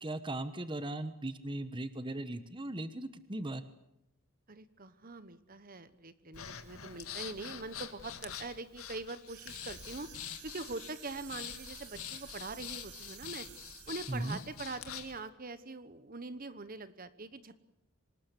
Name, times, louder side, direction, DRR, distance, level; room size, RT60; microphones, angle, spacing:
voice 1, 0.0-3.7 14.1-14.4, right 1 dB, 20° right, 11 dB, 1.1 m, -38 dB
voice 2, 4.5-10.1 10.4-13.5 13.9-17.6, right 3 dB, 40° right, 13 dB, 1.1 m, -43 dB
Breathing, 6.3-15.2, left 9 dB, 75° left, 2.0 m, -45 dB
sound 1, 9.3-14.6, right 10 dB, 90° right, 2.3 m, -53 dB
26.5 x 19.0 x 8.3 m, 0.83 s
head